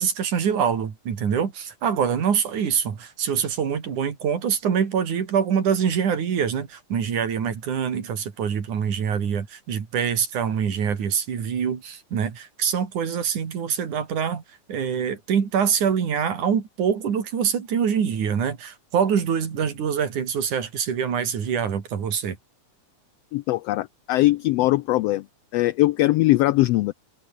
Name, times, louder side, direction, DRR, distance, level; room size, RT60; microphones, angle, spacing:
voice 1, 0.0-14.4 14.7-22.4, right 7 dB, 90° right, 4.4 m, -25 dB
voice 2, 23.3-25.2 25.5-26.9, left 17 dB, 85° left, 1.4 m, -21 dB
omnidirectional pair, 3.4 m